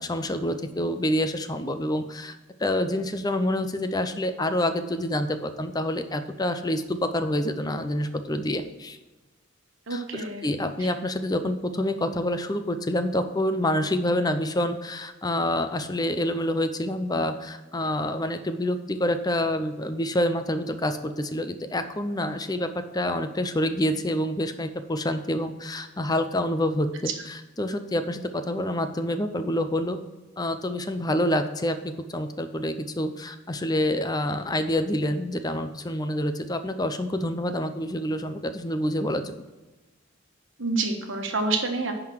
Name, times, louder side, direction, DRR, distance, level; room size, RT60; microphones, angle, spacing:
voice 1, 0.0-9.0 9.9-22.7 22.9-30.0 30.4-39.3, left 1 dB, 20° left, 9 dB, 0.6 m, -27 dB
voice 2, 9.9-10.5 40.6-41.9, right 3 dB, 70° right, 3 dB, 1.4 m, -27 dB
10.5 x 3.8 x 6.2 m, 1.1 s
head